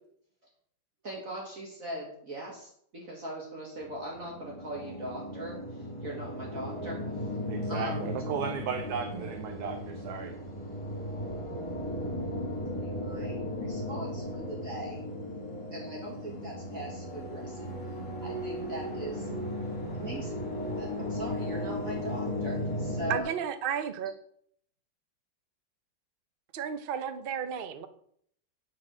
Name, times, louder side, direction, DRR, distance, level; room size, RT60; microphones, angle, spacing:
voice 1, 1.0-7.3 7.7-8.1 9.1-9.2 12.8-15.0 15.7-17.7 18.2-19.3 19.9-20.4 20.8-23.4, right 1 dB, 45° right, -3 dB, 2.1 m, -40 dB
sound 1, 3.8-23.2, left 1 dB, 15° left, 2.2 m, -36 dB
voice 2, 7.5-10.3, right 6 dB, 60° right, 6 dB, 1.2 m, -35 dB
voice 3, 23.1-24.1 26.5-27.9, right 8 dB, 80° right, 10 dB, 0.4 m, -33 dB
9.9 x 4.7 x 6.1 m, 0.67 s
omnidirectional pair, 2.0 m